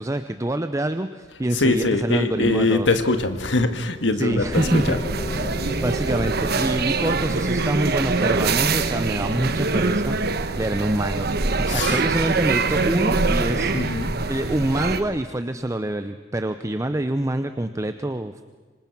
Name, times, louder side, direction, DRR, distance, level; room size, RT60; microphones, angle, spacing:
voice 1, 0.0-2.9 4.2-5.0 5.3-5.5 5.8-10.2 10.6-11.3 11.7-13.7 14.3-18.5, right 1 dB, 15° right, 9 dB, 0.7 m, -26 dB
voice 2, 1.5-5.0 11.7-12.0 13.7-14.1, left 2 dB, 80° left, 8 dB, 1.7 m, -22 dB
sound 1, 4.3-8.2, left 1 dB, 25° left, 1.1 m, -34 dB
sound 2, 4.5-15.0, right 3 dB, 60° right, 1.2 m, -24 dB
26.5 x 25.0 x 6.1 m, 1.4 s
head